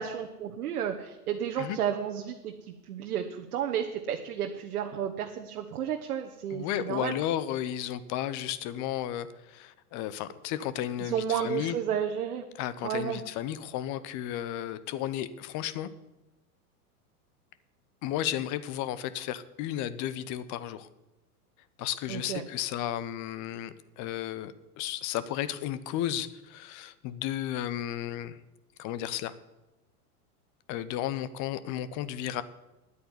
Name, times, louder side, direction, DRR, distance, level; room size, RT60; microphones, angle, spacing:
voice 1, 0.0-2.5 2.9-7.1 11.0-12.4 12.8-13.2 22.1-22.4, right 9 dB, 70° right, 3 dB, 1.3 m, -32 dB
voice 2, 6.5-11.8 12.5-15.9 18.0-20.9 21.8-28.4 28.8-29.3 30.7-32.4, left 11 dB, 40° left, 15 dB, 1.0 m, -33 dB
10.0 x 8.6 x 9.7 m, 1.0 s
hypercardioid pair, 100°, 45 cm